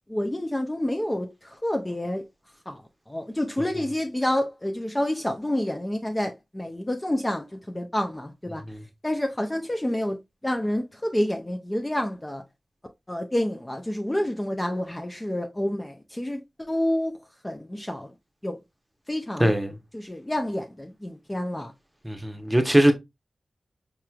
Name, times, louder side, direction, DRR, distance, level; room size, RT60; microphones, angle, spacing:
voice 1, 0.1-2.2 2.7-2.8 3.1-8.6 9.0-10.2 10.4-12.4 13.1-17.2 17.4-18.1 18.4-18.6 19.1-19.5 19.9-21.7, left 1 dB, 20° left, 0.5 m, -28 dB
voice 2, 19.4-19.7 22.0-22.9, right 1 dB, 10° right, 0.8 m, -20 dB
4.8 x 3.0 x 2.2 m
cardioid pair, 60°, 0 cm